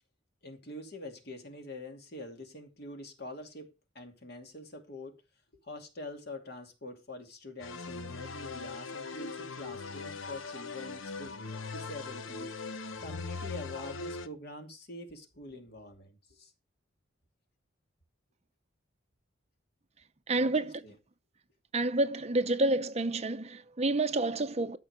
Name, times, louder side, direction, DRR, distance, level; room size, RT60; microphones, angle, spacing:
voice 1, 0.4-5.2 5.5-11.4 11.7-16.5 20.4-20.9, left 2 dB, 50° left, 2.6 m, -45 dB
sound 1, 7.6-14.3, left 4 dB, 80° left, 1.0 m, -40 dB
voice 2, 20.3-20.8 21.7-24.8, right 2 dB, 30° right, 0.7 m, -29 dB
13.5 x 6.3 x 5.0 m
head